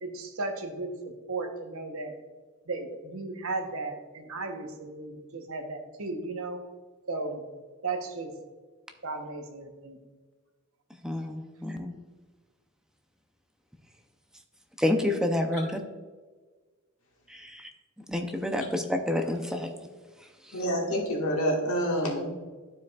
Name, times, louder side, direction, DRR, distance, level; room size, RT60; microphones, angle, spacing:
voice 1, 0.0-2.1 2.7-6.6 7.1-7.4 7.8-8.3 9.0-10.0, right 3 dB, 70° right, 5 dB, 0.9 m, -35 dB
voice 2, 11.0-11.9 14.8-15.8 17.3-17.7 18.1-19.7, left 1 dB, 5° right, 4 dB, 0.5 m, -28 dB
voice 3, 20.5-22.3, equal, 75° left, -1 dB, 1.6 m, -27 dB
12.0 x 4.7 x 2.3 m, 1.4 s
head